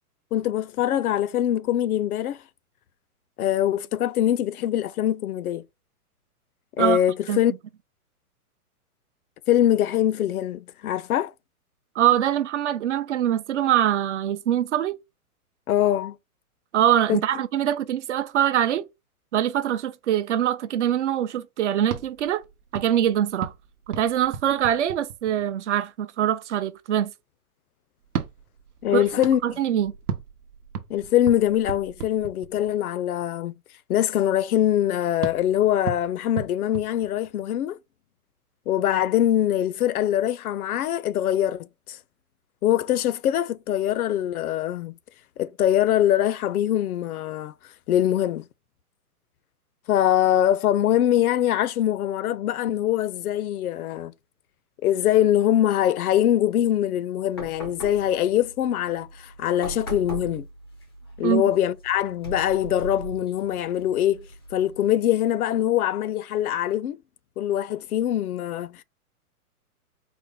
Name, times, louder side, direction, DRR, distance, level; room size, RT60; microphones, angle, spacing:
voice 1, 0.3-2.4 3.4-5.6 6.8-7.5 9.5-11.3 15.7-16.2 17.1-17.2 28.8-29.4 30.9-33.5 33.9-37.8 38.7-42.0 42.6-44.9 45.4-47.5 47.9-48.5 49.9-54.1 54.8-60.5 61.2-67.0 67.4-68.8, left 11 dB, 70° left, 0.5 m, -23 dB
voice 2, 12.0-15.0 16.7-18.8 19.3-22.4 22.7-23.5 23.9-27.1 28.9-29.0 29.4-29.9 61.2-61.4, right 10 dB, 50° right, 0.5 m, -23 dB
sound 1, 21.8-25.6 28.0-32.9 35.2-37.6, right 7 dB, 80° right, 0.9 m, -36 dB
sound 2, 57.3-64.8, right 1 dB, 20° left, 0.3 m, -39 dB
4.3 x 2.0 x 3.6 m
hypercardioid pair, 145°, 45 cm